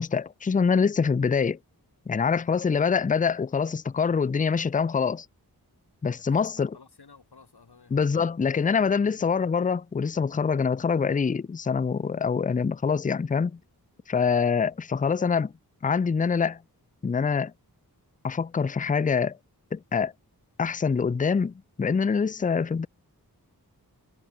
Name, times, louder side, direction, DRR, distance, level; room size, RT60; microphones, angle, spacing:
voice 1, 0.0-1.6 2.1-5.3 6.0-6.7 7.9-13.6 14.1-15.5 15.8-16.6 17.0-17.5 18.2-19.4 19.7-20.1 20.6-22.9, left 5 dB, 20° left, 0.4 m, -25 dB
voice 2, 6.1-7.9 14.1-14.3, left 5 dB, 90° left, 3.9 m, -53 dB
wide cardioid pair, 55°, 38 cm